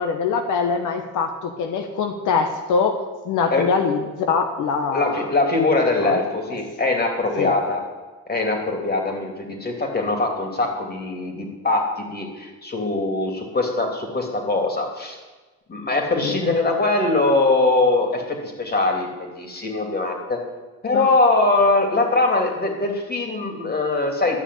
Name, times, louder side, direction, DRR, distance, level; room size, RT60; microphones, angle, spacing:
voice 1, 0.0-3.0 3.2-5.3 6.0-6.2 7.4-7.5 16.2-16.4 20.9-21.1, left 5 dB, 85° left, 5 dB, 1.1 m, -23 dB
voice 2, 4.9-7.8 8.3-11.8 12.1-15.2 15.7-20.4 20.8-24.4, left 2 dB, 30° left, 2 dB, 3.0 m, -22 dB
12.0 x 6.3 x 8.4 m, 1.3 s
cardioid pair, 90°, 30 cm